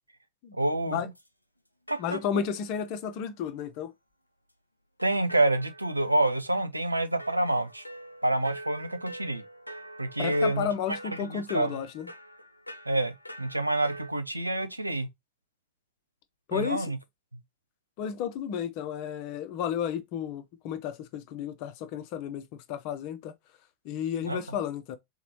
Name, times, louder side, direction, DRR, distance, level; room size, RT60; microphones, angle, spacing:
voice 1, 0.5-1.1 2.1-2.2 5.0-7.8 8.2-9.4 10.0-11.8 12.9-13.1 13.4-15.1 16.5-17.0 24.3-24.6, right 2 dB, 85° right, 0.5 m, -27 dB
sound 1, 1.1-1.3 1.9-2.6 3.0-3.1 5.0-6.6 7.2-14.1, right 1 dB, 85° left, 0.4 m, -45 dB
voice 2, 2.0-3.9 10.2-12.1 16.5-16.9 18.0-22.4 22.7-23.3 23.8-25.0, left 8 dB, 45° left, 0.6 m, -32 dB
3.5 x 3.0 x 3.1 m
figure-of-eight pair, 90°, 0 cm